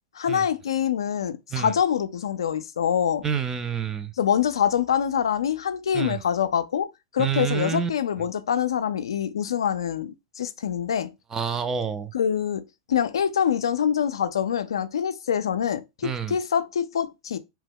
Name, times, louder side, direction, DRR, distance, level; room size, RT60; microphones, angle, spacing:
voice 1, 0.2-3.3 4.2-11.1 12.1-12.6 12.9-17.4, left 8 dB, 85° left, 0.4 m, -25 dB
voice 2, 3.2-4.1 5.9-6.2 7.2-7.9 11.3-12.1 16.0-16.4, right 7 dB, 20° right, 0.4 m, -28 dB
2.9 x 2.1 x 3.6 m
hypercardioid pair, 120°, 2 cm